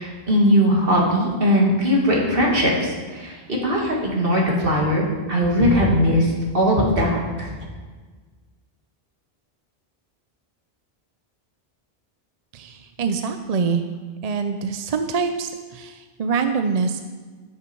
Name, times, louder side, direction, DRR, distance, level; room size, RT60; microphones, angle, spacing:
voice 1, 0.0-7.5, equal, 60° right, -3 dB, 2.5 m, -20 dB
voice 2, 12.5-13.8 14.2-17.0, right 5 dB, 45° right, 7 dB, 0.6 m, -25 dB
13.5 x 6.6 x 4.6 m, 1.4 s
omnidirectional pair, 1.1 m